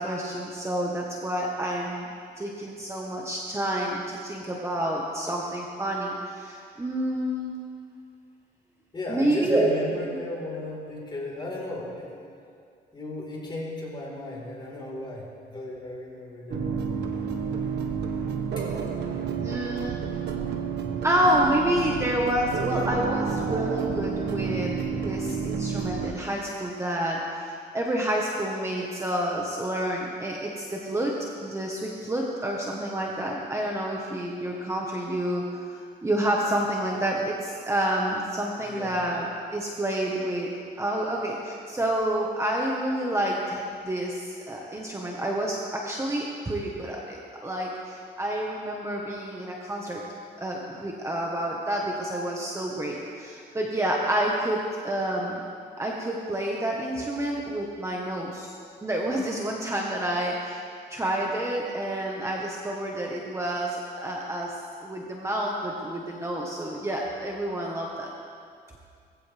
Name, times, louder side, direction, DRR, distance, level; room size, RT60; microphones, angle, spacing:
voice 1, 0.0-2.1 2.4-7.5 9.1-10.2 19.4-20.0 21.0-40.5 40.8-50.0 50.4-55.4 55.8-58.5 58.8-60.6 60.9-68.1, right 1 dB, 15° right, -2 dB, 1.5 m, -29 dB
voice 2, 8.9-12.2 12.9-17.0 18.6-18.7 38.6-38.9, left 2 dB, 25° left, -3 dB, 4.5 m, -36 dB
sound 1, 16.5-26.1, right 6 dB, 70° right, 1.6 m, -30 dB
21.0 x 16.0 x 3.6 m, 2.3 s
cardioid pair, 125°, 18 cm